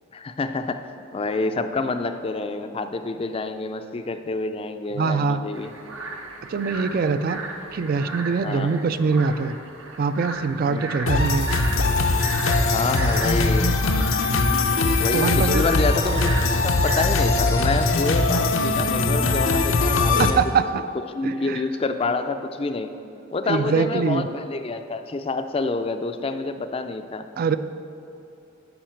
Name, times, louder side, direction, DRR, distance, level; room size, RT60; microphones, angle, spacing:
voice 1, 0.1-5.7 8.4-8.7 10.7-11.0 12.7-13.8 15.0-20.4 21.1-22.9 23.3-27.2, left 3 dB, 30° left, 9 dB, 0.4 m, -28 dB
voice 2, 4.9-5.4 6.5-7.4 7.7-9.6 10.0-11.5 15.1-15.6 20.2-20.8 21.2-21.6 23.5-24.3 27.4-27.6, right 5 dB, 45° right, 12 dB, 0.3 m, -23 dB
sound 1, 5.5-17.3, right 3 dB, 80° right, 1.0 m, -36 dB
sound 2, 11.1-20.3, left 3 dB, 80° left, 0.6 m, -21 dB
12.0 x 4.9 x 4.5 m, 2.8 s
head